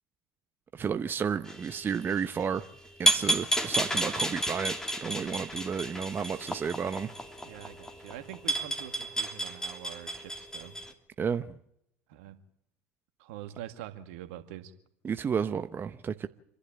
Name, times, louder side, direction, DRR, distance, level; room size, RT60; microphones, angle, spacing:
voice 1, 0.7-2.6 3.0-7.1 11.2-11.6 15.0-16.3, right 6 dB, 30° right, 0.9 m, -32 dB
sound 1, 1.5-10.9, right 1 dB, 10° left, 3.2 m, -32 dB
voice 2, 7.4-10.7 12.1-12.3 13.2-14.7, right 12 dB, 70° right, 2.2 m, -45 dB
28.0 x 11.5 x 9.0 m
hypercardioid pair, 75°, 7 cm